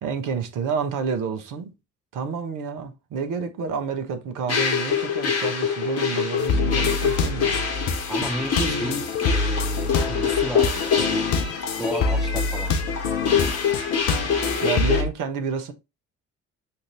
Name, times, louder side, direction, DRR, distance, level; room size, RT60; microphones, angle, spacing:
voice 1, 0.0-1.7 2.1-7.6 14.6-15.7, right 6 dB, 50° right, 1.0 m, -29 dB
sound 1, 4.5-15.0, left 6 dB, 40° left, 1.3 m, -25 dB
sound 2, 6.4-15.1, left 4 dB, 60° left, 0.8 m, -26 dB
voice 2, 8.1-11.3 11.8-12.8, right 1 dB, ahead, 0.4 m, -32 dB
6.6 x 2.6 x 3.0 m
figure-of-eight pair, 50°, 40 cm